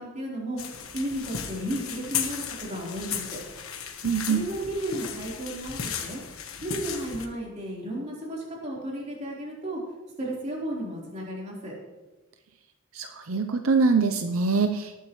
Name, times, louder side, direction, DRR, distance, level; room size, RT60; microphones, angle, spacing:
voice 1, 0.0-3.4 4.3-6.2 6.6-9.8 10.2-11.7, right 1 dB, 35° right, -4 dB, 4.1 m, -33 dB
sound 1, 0.6-7.3, left 7 dB, 85° left, 1.3 m, -35 dB
voice 2, 4.0-4.4 12.9-15.0, right 4 dB, 80° right, 7 dB, 0.7 m, -24 dB
19.5 x 9.2 x 3.2 m, 1.1 s
head